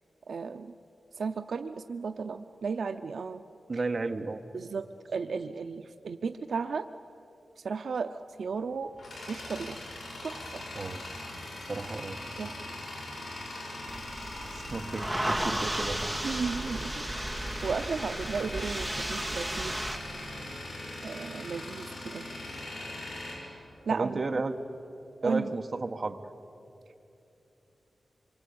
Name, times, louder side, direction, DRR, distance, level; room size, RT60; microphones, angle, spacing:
voice 1, 0.3-0.7 1.2-3.4 4.5-4.8 5.1-6.8 7.6-8.9 9.3-9.8 10.2-10.4 12.4-12.6 16.2-16.9 17.6-19.7 21.0-21.9 22.1-22.2 23.9-24.2 25.2-25.4, right 5 dB, 85° right, 8 dB, 0.6 m, -34 dB
voice 2, 3.7-4.4 10.7-11.0 11.7-12.2 14.4-16.2 23.9-24.6 25.2-26.2, right 3 dB, 45° right, 6 dB, 1.3 m, -33 dB
Tools, 8.5-24.3, left 1 dB, 75° left, 7.3 m, -41 dB
sound 1, 13.9-20.0, right 1 dB, 5° right, 2.2 m, -34 dB
26.5 x 23.5 x 8.6 m, 2.8 s
wide cardioid pair, 125°, 0 cm